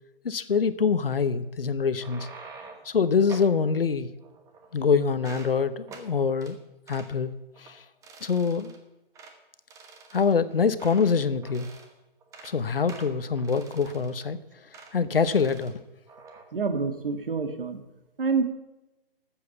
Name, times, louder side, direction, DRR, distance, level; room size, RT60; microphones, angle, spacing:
voice 1, 0.2-2.3 2.8-4.1 4.7-6.6 6.9-7.3 7.6-7.8 8.2-8.7 10.1-11.7 12.4-14.4 14.9-15.7, left 5 dB, 70° left, 14 dB, 1.0 m, -25 dB
sound 1, 1.8-2.9 3.3-3.6 4.2-4.8 5.1-5.5 5.9-6.1 6.4-6.5 6.9-7.1 7.5-7.7 8.0-8.8 9.1-9.4 9.7-11.2 11.4-11.9 12.2-12.5 12.9-14.3 14.7-14.9 15.2-15.7 16.1-16.4, right 4 dB, 10° right, 1.1 m, -47 dB
voice 2, 16.5-17.8 18.2-18.4, right 4 dB, 65° right, 7 dB, 2.0 m, -27 dB
12.5 x 7.7 x 7.2 m, 0.98 s
figure-of-eight pair, 135°, 29 cm